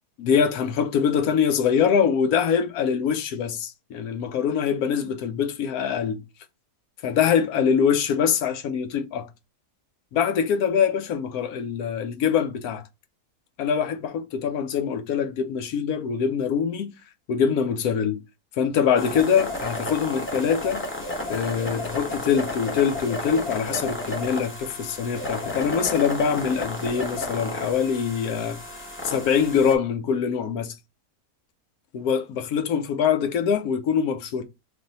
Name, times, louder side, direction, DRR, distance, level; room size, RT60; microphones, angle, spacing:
voice 1, 0.2-6.2 7.0-9.3 10.1-12.8 13.6-16.9 17.3-18.2 18.6-20.8 21.3-28.6 29.0-30.7 31.9-34.4, left 7 dB, 75° left, 1.1 m, -24 dB
sound 1, 19.0-29.8, left 1 dB, 15° left, 0.5 m, -32 dB
3.3 x 2.6 x 3.9 m
omnidirectional pair, 1.6 m